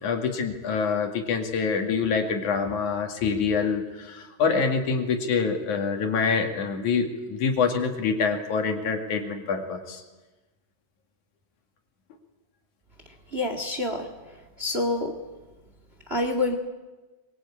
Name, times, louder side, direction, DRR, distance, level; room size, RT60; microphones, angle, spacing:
voice 1, 0.0-10.0, left 5 dB, 65° left, 4 dB, 3.5 m, -26 dB
voice 2, 13.3-14.1 14.6-15.1 16.1-16.6, left 2 dB, 25° right, 6 dB, 1.9 m, -26 dB
23.5 x 23.0 x 8.6 m, 1.2 s
omnidirectional pair, 3.7 m